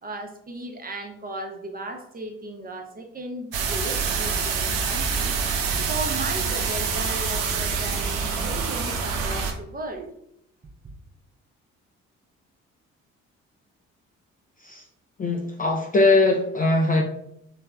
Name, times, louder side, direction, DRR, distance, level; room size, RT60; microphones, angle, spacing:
voice 1, 0.0-10.1, right 2 dB, 25° right, 3 dB, 0.5 m, -36 dB
sound 1, 3.5-9.5, right 5 dB, 70° right, 0.5 m, -26 dB
voice 2, 15.2-17.0, left 2 dB, 25° left, 1 dB, 0.3 m, -21 dB
3.3 x 2.0 x 2.2 m, 0.75 s
hypercardioid pair, 45°, 38 cm